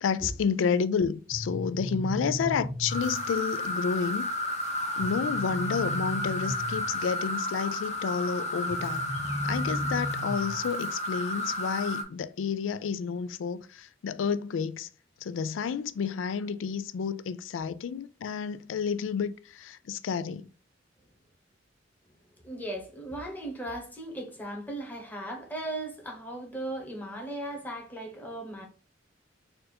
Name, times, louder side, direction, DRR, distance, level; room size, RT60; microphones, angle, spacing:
voice 1, 0.0-4.3 5.0-9.0 9.4-14.9 15.2-20.5, left 6 dB, 90° left, 0.3 m, -30 dB
sound 1, 1.3-3.3 5.0-7.0 8.7-10.7, equal, 10° right, 0.5 m, -35 dB
Fearless Cicada Hunters, 2.9-12.0, left 1 dB, 35° left, 1.0 m, -32 dB
voice 2, 22.4-28.7, right 1 dB, 10° left, 1.1 m, -37 dB
4.3 x 2.5 x 4.2 m
head